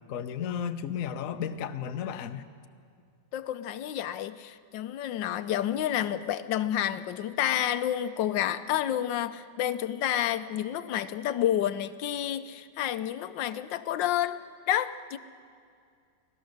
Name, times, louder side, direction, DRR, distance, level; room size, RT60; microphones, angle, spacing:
voice 1, 0.1-2.4, left 8 dB, 55° left, 9 dB, 1.0 m, -33 dB
voice 2, 3.3-14.4 14.7-15.2, left 11 dB, 85° left, 12 dB, 1.4 m, -29 dB
25.0 x 17.5 x 6.5 m, 2.3 s
omnidirectional pair, 2.0 m